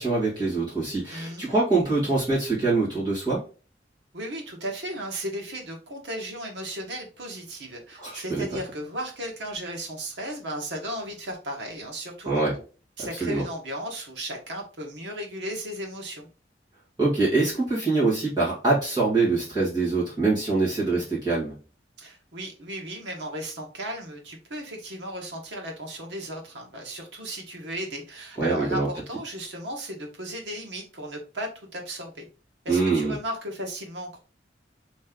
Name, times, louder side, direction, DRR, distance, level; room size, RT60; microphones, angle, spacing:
voice 1, 0.0-3.4 8.0-8.5 12.3-12.5 13.2-13.4 17.0-21.5 28.4-28.9 32.7-33.1, right 3 dB, 25° right, 1.8 m, -24 dB
voice 2, 1.1-1.4 4.1-12.6 13.0-16.3 22.0-32.3 32.6-34.2, equal, 80° right, 1.2 m, -35 dB
3.3 x 3.1 x 3.7 m
head